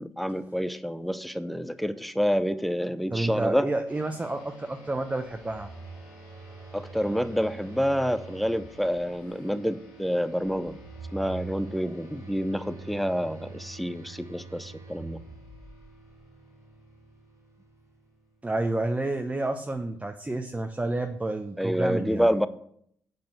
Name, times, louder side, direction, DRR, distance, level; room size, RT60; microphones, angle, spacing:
voice 1, 0.0-3.7 6.7-10.8 11.1-15.2 21.6-22.5, equal, ahead, 13 dB, 0.7 m, -28 dB
voice 2, 3.1-5.7 18.4-22.3, right 2 dB, 15° right, 6 dB, 1.0 m, -30 dB
sound 1, 3.9-18.7, equal, 80° left, 3.3 m, -52 dB
Telephone, 5.3-9.3 10.4-16.1, right 4 dB, 40° right, 1.3 m, -44 dB
8.5 x 6.2 x 6.5 m, 0.70 s
hypercardioid pair, 40°, 8 cm